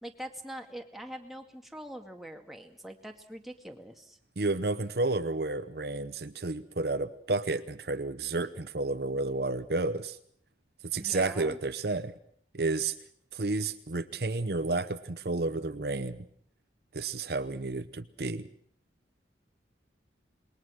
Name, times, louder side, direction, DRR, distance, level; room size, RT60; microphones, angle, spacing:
voice 1, 0.0-4.2 10.9-11.6, right 1 dB, ahead, 3 dB, 2.1 m, -43 dB
voice 2, 4.4-10.2 10.8-12.1 12.5-12.9 13.3-16.2 16.9-18.5, right 3 dB, 60° right, 10 dB, 0.9 m, -31 dB
27.0 x 21.0 x 6.4 m, 0.64 s
head